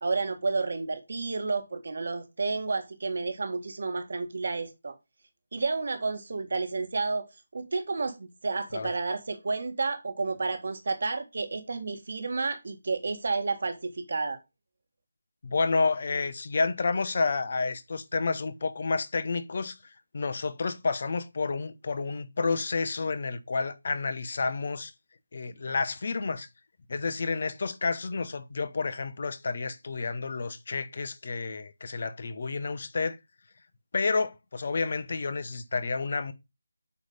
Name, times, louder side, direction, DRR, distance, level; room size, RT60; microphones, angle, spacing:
voice 1, 0.0-5.0 5.5-14.4, right 3 dB, 55° right, 1.7 m, -31 dB
voice 2, 15.4-19.8 20.1-24.9 25.3-26.5 26.9-33.2 33.9-36.3, left 4 dB, 45° left, 0.8 m, -30 dB
8.2 x 3.3 x 5.2 m
figure-of-eight pair, 165°, 0 cm